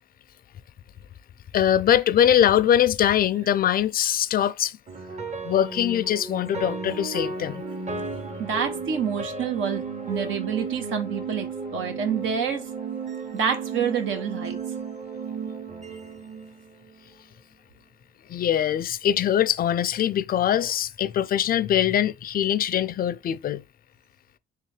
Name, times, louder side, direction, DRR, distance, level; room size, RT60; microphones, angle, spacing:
voice 1, 1.5-4.8 5.4-7.6 18.3-23.6, left 10 dB, 50° left, 0.4 m, -22 dB
sound 1, 4.9-17.1, right 4 dB, 35° right, 0.9 m, -34 dB
voice 2, 8.4-11.5 11.7-12.7 13.3-14.6, right 7 dB, 80° right, 1.0 m, -27 dB
3.3 x 3.2 x 3.3 m
cardioid pair, 90°, 20 cm